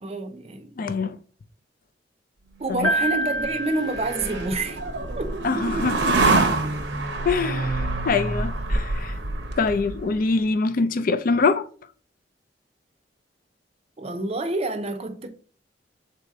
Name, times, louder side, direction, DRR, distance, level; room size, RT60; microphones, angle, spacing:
voice 1, 0.0-0.7 2.6-4.8 5.2-5.4 14.0-15.3, right 2 dB, 35° right, 0.6 m, -28 dB
voice 2, 0.8-1.2 2.8-2.9 5.4-6.4 7.3-9.1 9.6-11.7, left 4 dB, 50° left, 0.4 m, -24 dB
Piano, 2.8-4.9, right 1 dB, 5° left, 0.8 m, -28 dB
sound 1, 2.8-10.2, right 2 dB, 80° right, 0.8 m, -26 dB
4.0 x 2.8 x 4.6 m
head